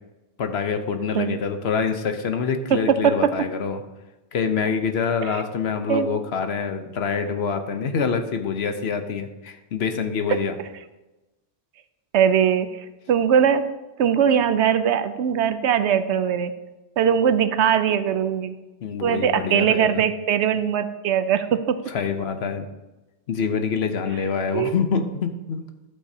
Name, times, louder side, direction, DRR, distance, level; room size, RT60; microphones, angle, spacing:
voice 1, 0.4-3.8 4.3-10.6 18.8-20.0 21.9-22.7 23.3-25.6, left 6 dB, 65° left, 7 dB, 1.0 m, -26 dB
voice 2, 2.7-3.3 5.2-5.4 5.9-6.1 10.3-10.4 12.1-13.6 14.0-16.5 17.0-18.5 19.0-21.8 24.5-24.7, right 8 dB, 75° right, 11 dB, 0.9 m, -21 dB
12.0 x 8.3 x 2.8 m, 1.1 s
omnidirectional pair, 1.2 m